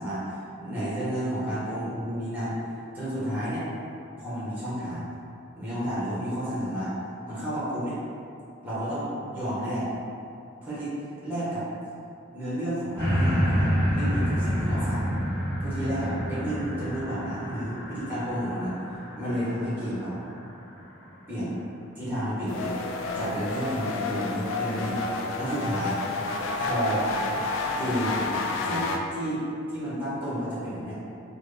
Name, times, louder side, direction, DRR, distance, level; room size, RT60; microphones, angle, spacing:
voice 1, 0.0-2.6 2.9-3.6 4.2-5.1 5.6-6.9 7.3-8.0 8.6-9.9 10.6-10.9 11.2-11.6 12.3-15.1 15.6-18.7 19.1-20.2 21.3-21.6 21.9-22.7 23.1-25.0 25.3-25.9 26.6-27.0 27.8-28.2 28.6-28.8 29.1-29.4 29.7-31.0, equal, 10° right, -10 dB, 1.0 m, -31 dB
sound 1, 13.0-20.3 20.9-21.0, equal, 10° left, 1.3 m, -28 dB
sound 2, 22.5-29.0, left 3 dB, 90° left, 0.3 m, -30 dB
3.4 x 2.1 x 3.3 m, 2.5 s
head